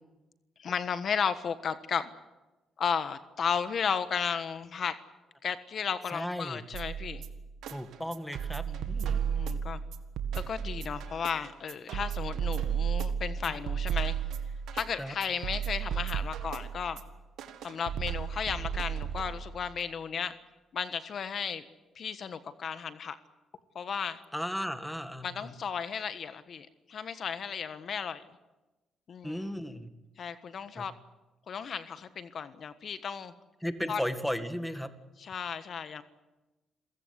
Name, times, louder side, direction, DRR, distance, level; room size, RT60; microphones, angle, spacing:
voice 1, 0.6-2.1 2.8-4.9 5.4-7.2 8.7-9.8 10.3-14.1 14.7-17.0 17.6-20.3 20.7-21.6 21.9-23.2 23.7-24.2 25.2-28.2 29.1-29.4 30.2-30.9 31.5-33.3 33.9-34.0 35.2-36.0, left 7 dB, 55° left, 12 dB, 1.4 m, -34 dB
voice 2, 6.1-6.6 7.7-9.3 15.0-15.1 24.3-25.5 29.2-29.9 30.8-30.9 33.6-34.9, equal, 5° left, 10 dB, 2.0 m, -35 dB
sound 1, 6.7-19.7, right 8 dB, 80° right, 1.9 m, -34 dB
28.0 x 16.0 x 9.8 m, 1.1 s
cardioid pair, 90°, 0 cm